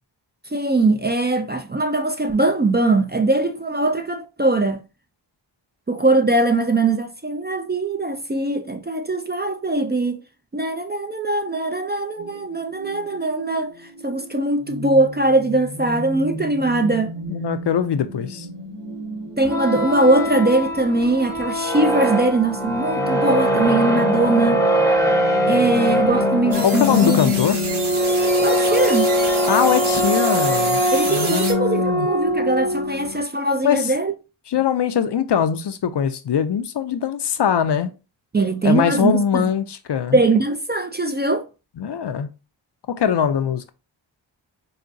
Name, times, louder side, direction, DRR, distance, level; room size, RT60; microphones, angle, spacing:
voice 1, 0.5-4.8 5.9-10.2 10.5-17.1 19.3-24.7 25.5-27.3 28.4-29.1 30.9-34.1 38.3-39.4 40.1-41.4, right 2 dB, 25° right, 0.4 m, -21 dB
sound 1, 12.2-28.0, right 1 dB, 60° right, 1.0 m, -36 dB
voice 2, 17.3-18.5 26.6-27.6 29.5-30.8 31.1-32.1 33.6-33.9 34.5-37.9 38.6-40.2 41.8-42.3 42.9-43.6, left 8 dB, 60° left, 0.5 m, -21 dB
sound 2, 19.4-33.2, equal, 5° left, 0.8 m, -21 dB
sound 3, 26.5-31.5, right 3 dB, 85° right, 1.1 m, -29 dB
4.8 x 2.1 x 2.5 m
wide cardioid pair, 45°, 47 cm